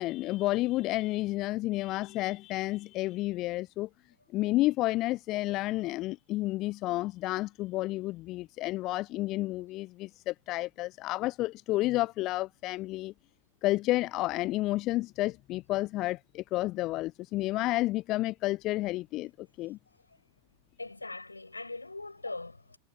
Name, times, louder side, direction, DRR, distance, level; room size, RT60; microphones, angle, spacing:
voice 1, 0.0-3.9 4.3-13.1 13.6-19.8, left 18 dB, 40° left, 0.4 m, -31 dB
voice 2, 20.8-22.8, left 2 dB, 80° left, 6.5 m, -40 dB
figure-of-eight pair, 90°, 0 cm